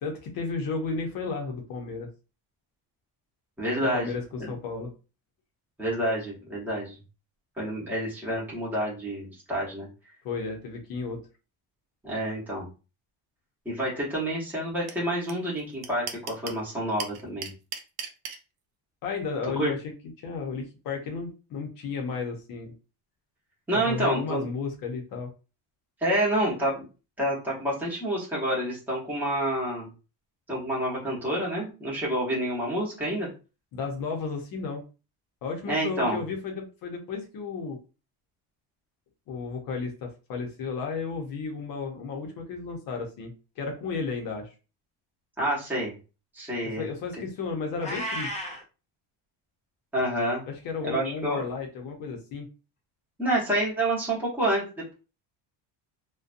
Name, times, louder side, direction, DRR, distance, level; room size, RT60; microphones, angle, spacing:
voice 1, 0.0-2.1 3.9-4.9 10.2-11.3 19.0-19.8 20.2-22.7 23.9-25.3 33.7-34.8 35.4-37.8 39.3-44.5 46.8-48.3 50.5-52.5, left 4 dB, 55° left, 3 dB, 0.7 m, -33 dB
voice 2, 3.6-4.1 4.4-4.5 5.8-7.0 7.6-9.9 12.0-12.7 13.6-17.5 19.6-19.8 23.7-24.5 26.0-26.8 27.2-29.9 30.5-33.3 35.7-36.2 45.4-45.9 46.3-46.9 49.9-50.5 50.8-51.4 53.2-54.9, right 1 dB, 5° right, -5 dB, 0.8 m, -28 dB
sound 1, 14.9-15.0 15.3-15.4 15.6-16.6 17.0-18.4, right 7 dB, 60° right, 0.5 m, -35 dB
Meow, 47.8-48.6, equal, 20° left, 0.3 m, -33 dB
2.5 x 2.2 x 2.4 m, 0.32 s
cardioid pair, 165°, 42 cm